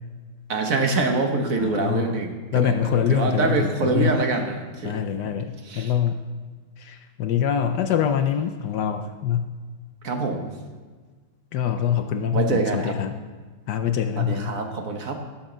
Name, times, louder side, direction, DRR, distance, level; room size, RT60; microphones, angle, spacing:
voice 1, 0.5-5.4 5.6-5.9 10.0-10.5 12.3-12.9 14.2-15.2, right 3 dB, 50° right, 4 dB, 1.2 m, -25 dB
voice 2, 1.6-2.2 2.5-4.2 4.8-6.3 6.8-9.5 11.5-13.2 13.7-14.6, left 8 dB, 70° left, 7 dB, 1.0 m, -24 dB
17.5 x 7.2 x 3.9 m, 1.4 s
omnidirectional pair, 2.3 m